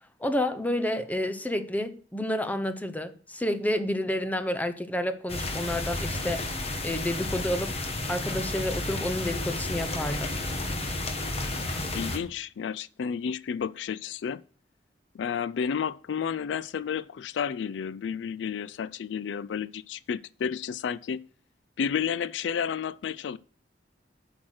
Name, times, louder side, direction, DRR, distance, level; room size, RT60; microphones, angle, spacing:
voice 1, 0.2-6.5 6.8-7.7 8.1-10.4, left 1 dB, 10° left, 0.8 m, -30 dB
sound 1, 5.3-12.2, left 2 dB, 35° left, 1.3 m, -32 dB
voice 2, 11.9-14.4 15.1-21.2 21.8-23.4, left 7 dB, 80° left, 0.3 m, -31 dB
8.6 x 5.9 x 6.4 m
head